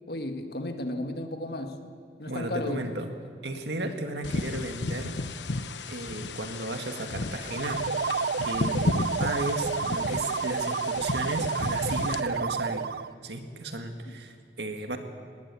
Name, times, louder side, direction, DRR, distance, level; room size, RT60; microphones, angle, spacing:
voice 1, 0.1-1.8 2.2-2.8 14.1-14.2, left 1 dB, 60° left, 6 dB, 1.7 m, -34 dB
voice 2, 2.3-3.1 3.4-5.1 5.9-7.8 8.4-12.9 13.2-15.0, right 2 dB, 75° right, 5 dB, 2.0 m, -34 dB
sound 1, 4.2-12.2, left 2 dB, 85° left, 1.0 m, -33 dB
sound 2, 7.4-13.1, right 5 dB, 55° right, 0.4 m, -30 dB
19.0 x 19.0 x 8.4 m, 2.3 s
head